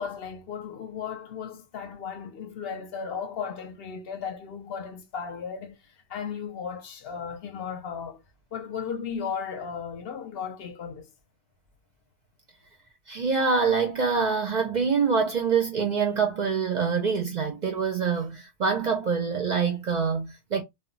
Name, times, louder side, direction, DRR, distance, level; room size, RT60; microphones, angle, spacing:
voice 1, 0.0-5.8 6.1-8.2 8.5-11.1, left 6 dB, 65° left, 0.7 m, -35 dB
voice 2, 13.1-20.6, right 5 dB, 55° right, 0.5 m, -25 dB
2.2 x 2.1 x 3.7 m
omnidirectional pair, 1.1 m